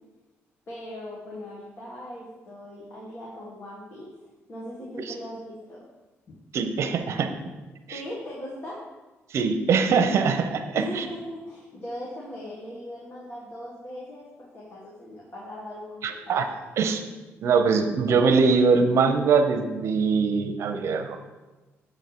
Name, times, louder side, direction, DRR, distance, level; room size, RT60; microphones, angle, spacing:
voice 1, 0.7-4.1 4.5-5.9 7.9-8.8 10.7-16.4, left 1 dB, 45° left, -5 dB, 1.6 m, -39 dB
voice 2, 6.5-7.3 7.9-8.0 9.3-11.0 16.0-16.5 16.8-17.0 17.4-21.2, right 5 dB, 65° right, 6 dB, 0.8 m, -22 dB
7.4 x 4.0 x 6.0 m, 1.2 s
cardioid pair, 105°, 5 cm